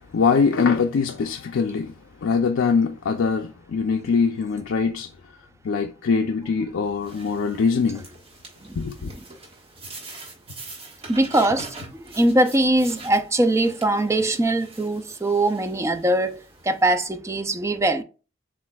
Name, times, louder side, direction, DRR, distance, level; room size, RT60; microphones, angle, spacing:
voice 1, 0.1-1.9 2.2-5.1 5.6-8.0 8.8-9.1, left 5 dB, 80° left, 0.4 m, -22 dB
sound 1, 7.0-16.9, right 2 dB, 30° right, 1.3 m, -43 dB
voice 2, 11.1-11.7 12.0-16.4 16.6-18.0, right 1 dB, 15° right, 0.4 m, -21 dB
7.1 x 2.5 x 2.2 m
head